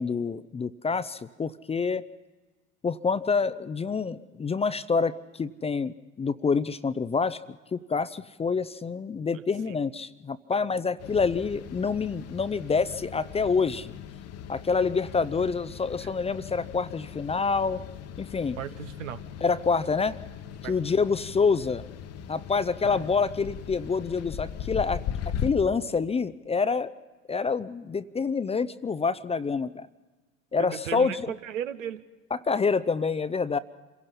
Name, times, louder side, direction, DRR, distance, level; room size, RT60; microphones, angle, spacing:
voice 1, 0.0-2.0 2.8-13.9 14.5-17.8 18.2-18.6 19.4-20.2 20.7-21.8 22.3-25.0 25.4-26.9 27.3-29.9 30.5-31.3 32.4-33.6, left 5 dB, 15° left, 15 dB, 0.6 m, -27 dB
sound 1, 11.0-25.5, left 8 dB, 40° left, 1.1 m, -39 dB
voice 2, 18.6-19.2 20.6-20.7 30.6-32.0, right 10 dB, 75° right, 11 dB, 1.0 m, -36 dB
27.0 x 17.0 x 5.6 m, 1.3 s
figure-of-eight pair, 65°, 39 cm